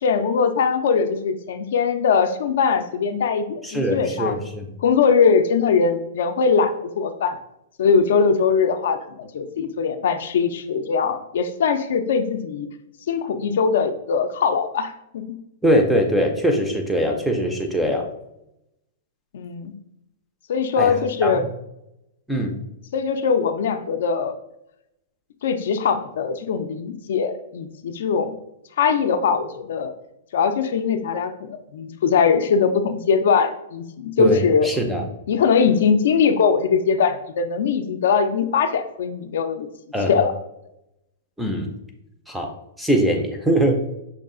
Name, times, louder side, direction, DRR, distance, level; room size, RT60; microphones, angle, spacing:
voice 1, 0.0-4.3 4.8-7.4 7.8-12.7 13.1-15.4 19.3-19.7 20.5-21.4 22.9-24.3 25.4-28.4 28.8-29.9 30.3-34.7 35.3-39.7 40.1-40.3, left 6 dB, 60° left, 8 dB, 0.4 m, -21 dB
voice 2, 3.6-4.7 15.6-18.1 20.8-20.9 21.2-21.3 22.3-22.6 34.2-35.0 39.9-40.2 41.4-41.7 42.3-42.5 42.8-43.8, equal, ahead, 3 dB, 0.4 m, -22 dB
5.9 x 2.3 x 3.7 m, 0.83 s
supercardioid pair, 175°, 0 cm